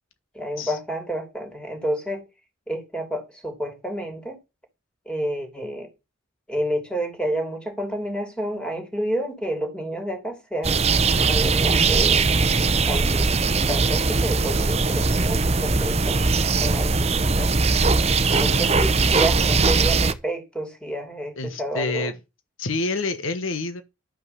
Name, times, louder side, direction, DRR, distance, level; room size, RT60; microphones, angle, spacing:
voice 1, 0.3-2.2 2.7-4.4 5.0-5.9 6.5-10.9 11.2-12.3 12.9-16.3 16.6-17.5 18.3-22.1, right 1 dB, 5° left, 3.0 m, -30 dB
sound 1, 10.6-20.1, right 4 dB, 30° right, 0.8 m, -20 dB
voice 2, 21.4-22.2 22.6-23.8, left 3 dB, 75° left, 1.2 m, -28 dB
11.5 x 5.7 x 6.9 m
head